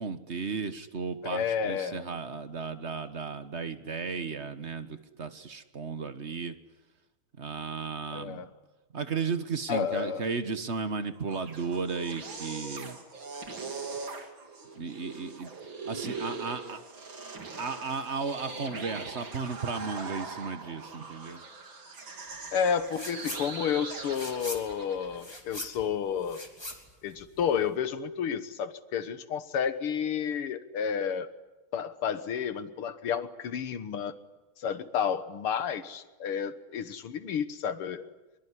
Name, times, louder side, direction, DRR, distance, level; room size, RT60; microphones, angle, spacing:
voice 1, 0.0-6.5 7.4-8.5 8.9-13.0 14.8-15.5 15.8-16.8 17.6-21.4, right 5 dB, 35° right, 10 dB, 1.3 m, -34 dB
voice 2, 1.2-2.0 8.1-8.5 9.7-10.2 22.5-26.4 27.0-31.3 31.7-34.1 34.6-38.1, left 7 dB, 85° left, 11 dB, 2.2 m, -31 dB
sound 1, 11.2-25.3, right 4 dB, 60° right, 3.4 m, -41 dB
sound 2, 22.9-23.5 23.8-27.7, left 1 dB, 10° left, 2.9 m, -41 dB
24.0 x 23.0 x 10.0 m, 1.1 s
omnidirectional pair, 2.4 m